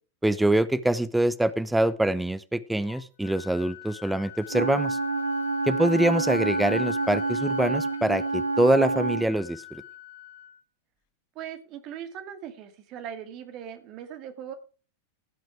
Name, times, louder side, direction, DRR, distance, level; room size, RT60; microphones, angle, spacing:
voice 1, 0.2-5.0 5.7-9.8, right 1 dB, 5° right, 14 dB, 0.8 m, -24 dB
Wind instrument woodwind instrument, 2.9-10.6, left 15 dB, 50° left, 1.2 m, -42 dB
Wind instrument woodwind instrument 2, 4.5-9.3, right 3 dB, 75° right, 0.9 m, -28 dB
voice 2, 11.4-14.5, right 9 dB, 40° right, 8 dB, 2.1 m, -39 dB
16.0 x 6.3 x 4.8 m, 0.36 s
figure-of-eight pair, 90°, 0 cm